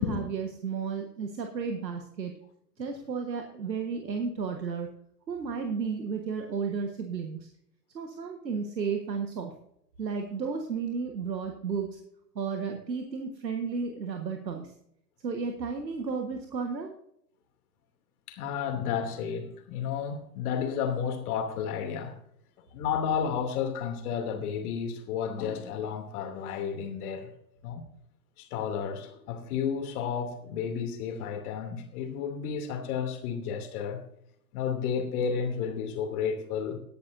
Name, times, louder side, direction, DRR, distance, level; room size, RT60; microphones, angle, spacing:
voice 1, 0.0-2.3 2.8-4.9 5.3-7.5 7.9-9.5 10.0-12.0 12.3-14.7 15.2-16.9, right 5 dB, 90° right, 1.5 m, -33 dB
voice 2, 18.3-22.1 22.7-27.3 27.6-27.9 28.4-34.0 34.5-36.8, left 7 dB, 60° left, 2.8 m, -32 dB
18.0 x 10.0 x 2.6 m
hypercardioid pair, 100°, 49 cm